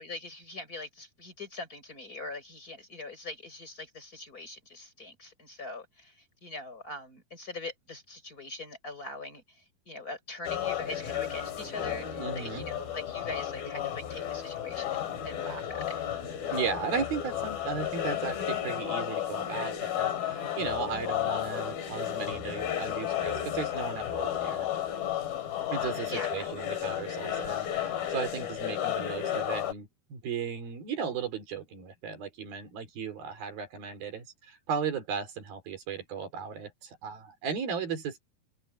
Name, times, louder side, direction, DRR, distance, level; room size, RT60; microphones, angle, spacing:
voice 1, 0.0-16.0 26.1-26.5, left 2 dB, 25° left, 5.1 m, -42 dB
sound 1, 10.5-29.7, left 11 dB, 80° left, 4.5 m, -33 dB
voice 2, 12.2-12.7 16.5-24.7 25.7-38.2, right 6 dB, 80° right, 5.4 m, -36 dB
open air
omnidirectional pair, 4.1 m